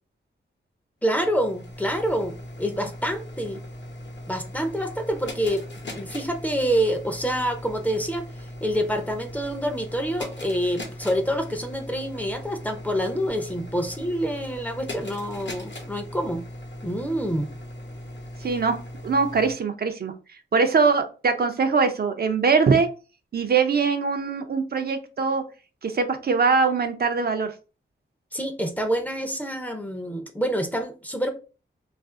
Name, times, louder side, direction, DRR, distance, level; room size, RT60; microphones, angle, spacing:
sound 1, 1.0-19.5, left 1 dB, 65° left, 0.8 m, -39 dB
voice 1, 1.0-3.6 4.3-5.6 5.9-8.3 8.6-16.4 16.8-17.5 18.4-18.5 28.3-31.3, equal, 10° left, 0.5 m, -27 dB
voice 2, 18.4-18.8 19.0-20.1 20.5-22.9 23.3-25.4 25.8-27.5, right 5 dB, 50° right, 0.5 m, -22 dB
2.5 x 2.4 x 3.5 m
wide cardioid pair, 100°, 20 cm